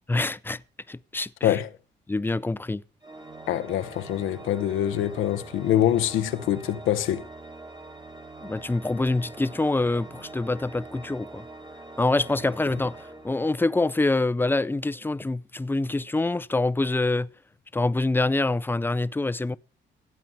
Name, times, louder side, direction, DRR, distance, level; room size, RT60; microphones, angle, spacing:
voice 1, 0.1-0.6 0.9-1.6 2.1-2.8 8.4-11.4 12.0-17.3 17.7-19.6, left 2 dB, 10° left, 0.6 m, -25 dB
Organ, 3.0-13.9, right 2 dB, 20° right, 1.6 m, -44 dB
voice 2, 3.5-7.2, left 11 dB, 90° left, 1.0 m, -24 dB
16.5 x 9.2 x 5.7 m
cardioid pair, 90°, 20 cm